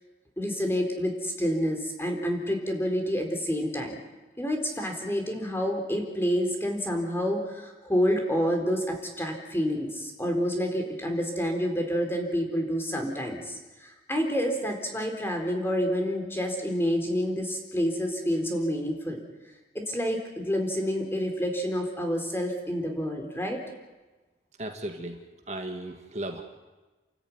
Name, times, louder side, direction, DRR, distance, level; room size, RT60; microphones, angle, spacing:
voice 1, 0.4-4.0 4.4-19.2 19.7-23.6, equal, 15° left, 3 dB, 3.9 m, -28 dB
voice 2, 24.6-26.4, right 1 dB, 40° right, 4 dB, 1.9 m, -36 dB
29.5 x 14.0 x 9.6 m, 1.2 s
head